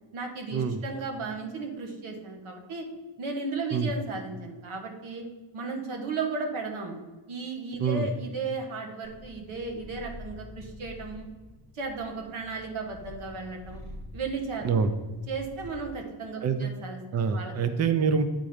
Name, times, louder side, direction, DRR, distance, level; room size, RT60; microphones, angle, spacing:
voice 1, 0.1-2.8 3.2-5.2 5.5-7.0 7.3-11.3 11.7-13.8 14.1-14.6 15.3-17.0 17.3-17.5, right 4 dB, 90° right, 2 dB, 1.5 m, -35 dB
Purr, 9.0-16.0, equal, 50° right, 1.9 m, -47 dB
voice 2, 17.1-18.2, right 5 dB, 35° right, 9 dB, 0.6 m, -25 dB
8.6 x 3.8 x 5.0 m, 1.3 s
cardioid pair, 105°, 48 cm